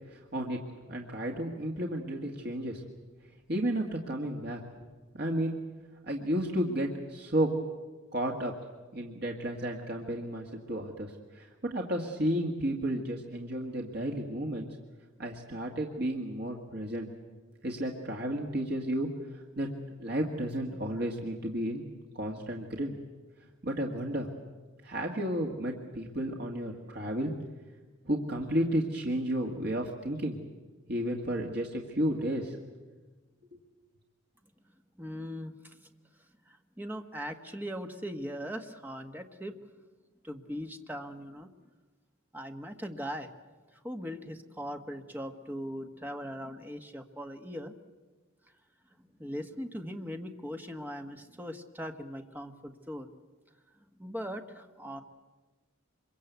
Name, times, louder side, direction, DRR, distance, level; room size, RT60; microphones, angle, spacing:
voice 1, 0.1-0.6 0.9-2.8 3.5-4.6 5.1-5.6 6.1-7.5 8.1-8.5 8.9-14.7 15.2-17.1 17.6-19.7 20.0-21.8 22.1-23.0 23.6-24.3 24.8-27.3 28.1-30.4 30.9-32.6, right 1 dB, 50° right, 1 dB, 1.9 m, -32 dB
voice 2, 35.0-35.9 36.5-39.6 40.2-41.5 42.3-43.3 43.8-47.7 49.2-53.1 54.0-55.0, equal, 10° right, 5 dB, 1.3 m, -40 dB
25.5 x 23.0 x 8.2 m, 1.3 s
head